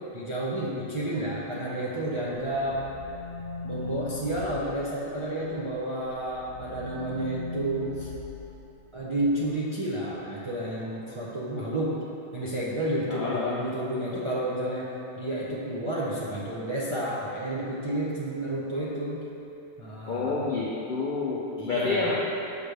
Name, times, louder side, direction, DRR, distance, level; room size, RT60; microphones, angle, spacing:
voice 1, 0.1-2.8 3.6-8.1 8.9-11.9 12.3-14.9 15.2-19.2 19.8-20.4 21.6-22.1, right 1 dB, 40° right, -7 dB, 0.4 m, -31 dB
sound 1, 1.8-5.7 6.1-9.4, left 3 dB, 75° left, 1.2 m, -41 dB
voice 2, 13.1-13.6 20.1-22.2, left 4 dB, 60° left, -5 dB, 0.5 m, -28 dB
6.7 x 5.0 x 3.3 m, 3.0 s
omnidirectional pair, 1.5 m